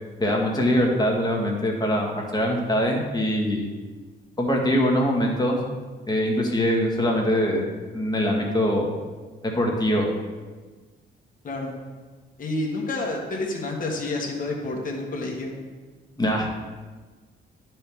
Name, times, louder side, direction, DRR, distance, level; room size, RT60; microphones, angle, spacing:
voice 1, 0.2-3.7 4.4-5.6 6.1-7.7 7.9-8.9 9.4-10.1 16.2-16.5, equal, 20° left, 0 dB, 1.4 m, -23 dB
voice 2, 12.4-15.5, left 2 dB, 45° left, -1 dB, 1.4 m, -29 dB
9.6 x 4.5 x 3.5 m, 1.4 s
cardioid pair, 90°, 20 cm